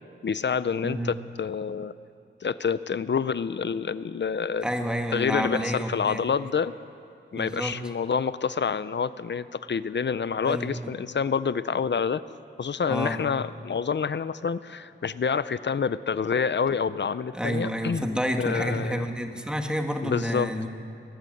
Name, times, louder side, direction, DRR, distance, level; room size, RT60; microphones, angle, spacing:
voice 1, 0.2-1.9 2.4-4.7 5.1-6.7 7.3-12.2 12.6-18.1 18.4-19.0 20.0-20.5, left 6 dB, 65° left, 15 dB, 0.7 m, -27 dB
voice 2, 0.8-1.2 4.6-6.3 7.3-7.8 10.4-10.9 12.9-13.2 17.3-20.7, equal, 5° right, 4 dB, 1.8 m, -29 dB
21.5 x 18.0 x 7.9 m, 2.6 s
wide cardioid pair, 110°, 20 cm